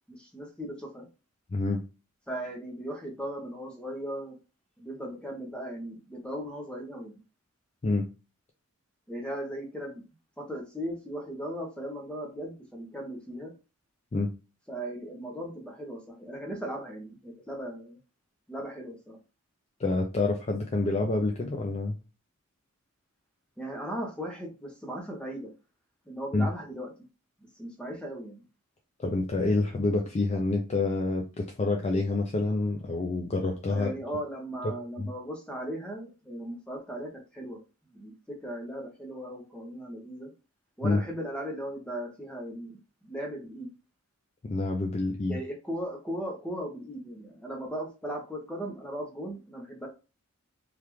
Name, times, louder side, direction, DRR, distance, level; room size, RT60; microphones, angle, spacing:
voice 1, 0.1-1.1 2.3-4.4 4.8-7.2 9.1-10.0 10.4-13.5 14.7-18.0 18.5-19.2 23.6-25.5 26.1-26.9 27.6-28.4 33.7-37.6 37.9-40.3 40.8-42.8 43.0-43.7 45.3-49.9, equal, 5° left, 1 dB, 0.7 m, -37 dB
voice 2, 1.5-1.8 7.8-8.1 14.1-14.3 19.8-22.0 26.3-26.5 29.0-33.9 34.6-34.7 35.0-35.1 40.8-41.0 44.4-45.4, left 2 dB, 30° left, 2 dB, 0.3 m, -27 dB
3.3 x 2.4 x 3.0 m, 0.31 s
head